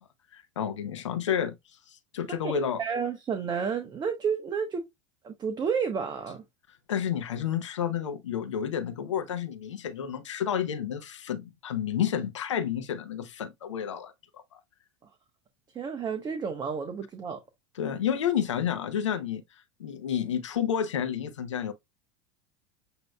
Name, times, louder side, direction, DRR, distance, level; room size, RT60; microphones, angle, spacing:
voice 1, 0.3-1.6 1.9-2.8 6.9-14.1 14.5-14.6 17.8-19.4 19.8-21.7, left 8 dB, 90° left, 0.8 m, -30 dB
voice 2, 2.8-4.8 5.2-6.4 15.7-17.4, right 6 dB, 30° right, 1.1 m, -31 dB
7.9 x 2.9 x 2.3 m
hypercardioid pair, 95°, 15 cm